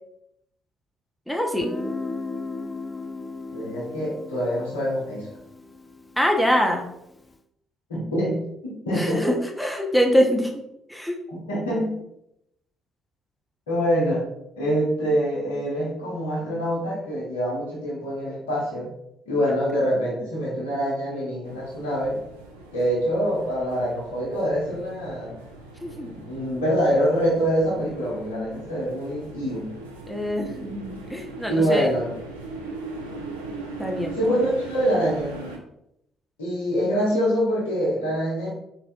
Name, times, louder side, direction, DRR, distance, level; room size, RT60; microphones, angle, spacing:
voice 1, 1.3-1.7 6.2-6.9 8.9-10.5 10.9-11.2 25.8-26.1 30.1-31.9 33.8-34.4, equal, ahead, 2 dB, 0.8 m, -24 dB
Guitar, 1.6-7.2, left 3 dB, 20° left, 0.3 m, -36 dB
voice 2, 3.5-5.3 7.9-9.2 11.3-11.9 13.7-14.3 14.6-18.9 19.3-22.2 22.7-25.3 26.0-29.7 31.5-32.1 34.2-35.4 36.4-38.5, equal, 75° left, -5 dB, 1.2 m, -25 dB
sound 1, 21.4-35.6, right 3 dB, 80° right, 0.4 m, -40 dB
4.2 x 4.0 x 2.3 m, 0.80 s
figure-of-eight pair, 45°, 0 cm